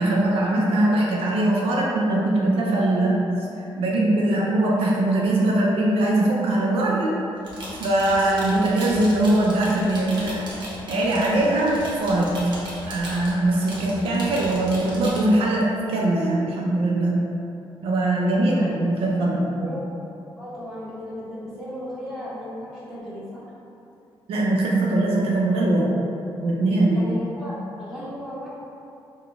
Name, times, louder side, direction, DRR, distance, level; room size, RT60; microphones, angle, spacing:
voice 1, 0.0-3.2 3.8-7.1 7.8-10.5 10.9-12.4 12.9-17.2 17.8-19.6 24.3-25.9 26.4-27.0, right 1 dB, 80° right, -3 dB, 0.5 m, -21 dB
sound 1, 7.4-15.2, right 1 dB, 55° right, 1.0 m, -37 dB
voice 2, 18.3-18.8 19.5-19.8 20.4-23.5 26.9-28.5, equal, 5° right, -12 dB, 1.4 m, -35 dB
4.0 x 2.2 x 3.3 m, 2.7 s
cardioid pair, 110°, 9 cm